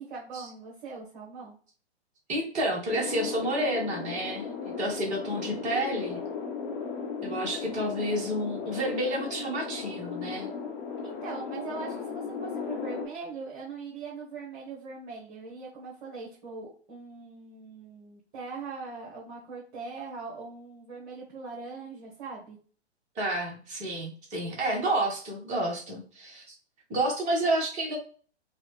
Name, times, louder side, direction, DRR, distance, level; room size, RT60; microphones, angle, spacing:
voice 1, 0.0-1.5 11.0-22.6, right 4 dB, 45° right, -4 dB, 1.5 m, -41 dB
voice 2, 2.3-6.2 7.2-10.5 23.1-26.4 26.9-28.0, right 1 dB, 20° right, -2 dB, 1.3 m, -30 dB
sound 1, 2.9-13.1, left 5 dB, 45° left, 1.2 m, -36 dB
4.7 x 2.4 x 3.3 m, 0.41 s
figure-of-eight pair, 110°, 34 cm